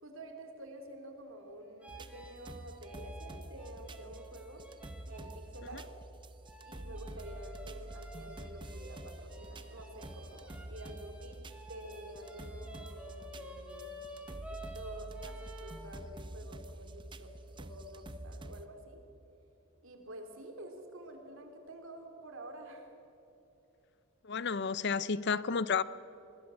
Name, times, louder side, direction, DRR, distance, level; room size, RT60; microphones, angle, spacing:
voice 1, 0.0-4.7 5.1-5.9 6.6-13.9 14.5-19.0 19.8-22.9, right 1 dB, 65° right, 3.2 m, -49 dB
sound 1, 1.8-5.9 6.4-15.8, equal, 5° right, 2.9 m, -52 dB
sound 2, 1.9-18.7, right 1 dB, 20° right, 0.7 m, -47 dB
voice 2, 24.2-25.8, left 5 dB, 50° left, 0.5 m, -31 dB
25.0 x 20.0 x 7.0 m
head